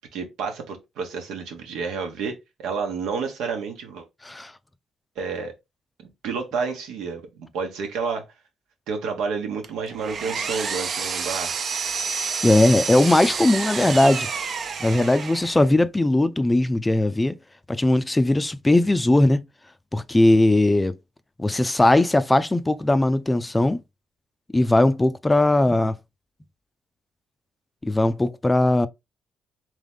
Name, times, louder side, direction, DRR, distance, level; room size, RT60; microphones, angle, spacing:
voice 1, 0.1-4.0 5.2-5.5 6.2-8.2 8.9-11.6, right 5 dB, 90° right, 1.2 m, -30 dB
Power tool, 9.6-15.7, right 5 dB, 50° right, 0.5 m, -29 dB
voice 2, 12.4-14.3 14.8-17.3 17.7-19.4 19.9-20.9 21.4-23.8 24.5-26.0 27.8-28.9, left 1 dB, 15° left, 0.4 m, -19 dB
3.7 x 3.0 x 3.5 m
cardioid pair, 90°, 0 cm